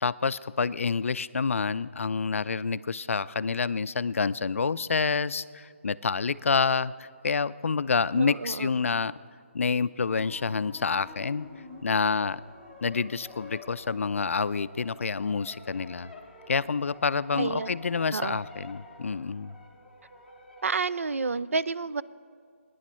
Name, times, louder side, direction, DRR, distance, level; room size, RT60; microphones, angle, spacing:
voice 1, 0.0-9.1 9.5-11.5 11.8-12.4 12.8-16.1 16.5-19.5, left 5 dB, 75° left, 16 dB, 0.4 m, -28 dB
voice 2, 8.1-8.8 17.3-17.7 18.1-18.4 20.6-22.0, right 4 dB, 85° right, 16 dB, 0.4 m, -30 dB
sound 1, 10.1-21.1, left 2 dB, ahead, 0.7 m, -49 dB
19.0 x 10.0 x 4.3 m, 2.1 s
hypercardioid pair, 165°, 7 cm